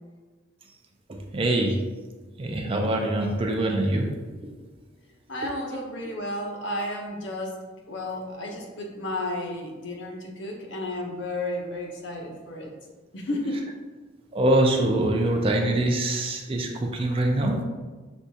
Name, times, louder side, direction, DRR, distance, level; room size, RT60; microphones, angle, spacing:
voice 1, 1.3-1.8 2.4-4.1 4.4-4.5 14.3-17.6, right 1 dB, 30° right, 2 dB, 0.4 m, -24 dB
voice 2, 5.3-7.6 7.9-12.7 13.1-13.6, left 1 dB, 65° left, 0 dB, 0.7 m, -32 dB
6.1 x 2.3 x 2.7 m, 1.3 s
head